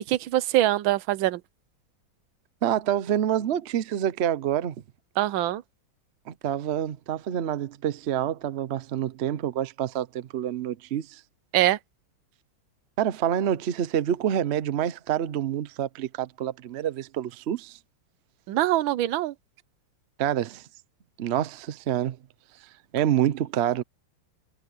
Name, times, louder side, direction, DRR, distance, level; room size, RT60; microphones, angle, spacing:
voice 1, 0.1-1.4 5.2-5.6 11.5-11.8 18.5-19.3, right 14 dB, 85° right, 1.5 m, -23 dB
voice 2, 2.6-4.7 6.3-11.2 13.0-17.8 20.2-20.6 21.2-22.2 22.9-23.8, right 10 dB, 65° right, 0.6 m, -27 dB
omnidirectional pair, 2.1 m